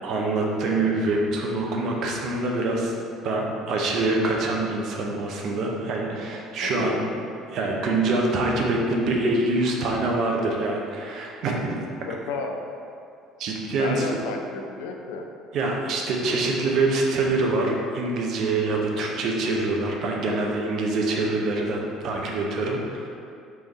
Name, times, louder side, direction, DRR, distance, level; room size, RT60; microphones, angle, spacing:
voice 1, 0.0-2.9 3.2-7.0 7.5-11.8 13.4-14.1 15.5-23.1, right 2 dB, 50° right, 0 dB, 0.6 m, -25 dB
voice 2, 6.6-7.0 12.1-12.6 13.8-15.3, left 4 dB, 65° left, 3 dB, 0.4 m, -32 dB
3.4 x 3.3 x 4.0 m, 2.5 s
figure-of-eight pair, 60°, 0 cm